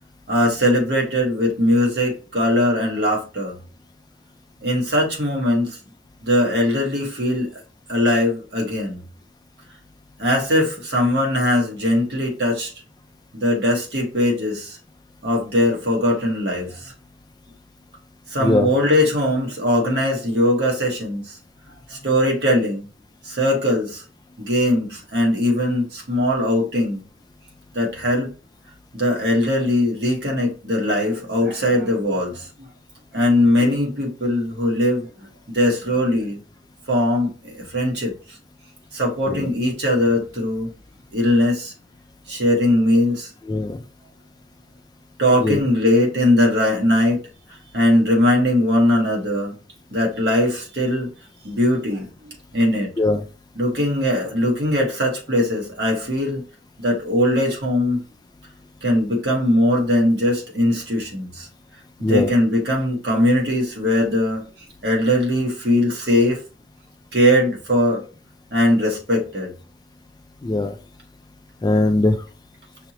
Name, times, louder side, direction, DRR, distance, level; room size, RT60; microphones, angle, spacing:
voice 1, 0.3-3.6 4.6-5.8 6.2-7.5 7.9-9.0 10.2-12.7 13.3-14.8 15.2-16.9 18.3-21.4 21.9-22.8 23.2-24.0 24.4-27.0 27.7-28.3 28.9-32.7 33.1-35.1 35.5-36.4 36.9-38.1 38.9-40.7 41.1-41.7 42.3-43.3 45.2-47.2 47.7-49.5 49.9-51.1 51.4-52.9 53.5-56.4 56.8-58.0 58.8-61.5 62.1-64.4 64.8-66.4 67.1-68.0 68.5-69.5, left 1 dB, 60° right, 1.5 m, -20 dB
voice 2, 18.4-18.7 33.6-33.8 39.3-39.5 43.5-43.8 45.4-45.6 53.0-53.2 62.0-62.3 70.4-70.8 71.6-72.2, left 2 dB, 20° left, 0.3 m, -20 dB
5.7 x 2.9 x 3.0 m
head